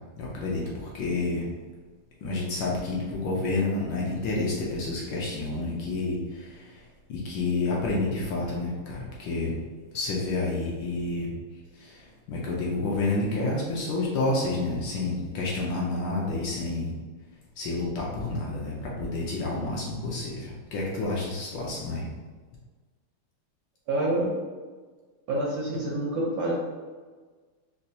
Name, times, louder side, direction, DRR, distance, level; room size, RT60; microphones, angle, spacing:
voice 1, 0.2-1.4 2.2-6.8 7.1-9.6 9.9-11.3 11.7-16.9 17.6-22.1, left 2 dB, 75° left, -3 dB, 1.2 m, -29 dB
voice 2, 23.9-24.3 25.3-26.5, right 2 dB, 70° right, -5 dB, 1.0 m, -27 dB
4.1 x 2.2 x 2.7 m, 1.4 s
omnidirectional pair, 2.4 m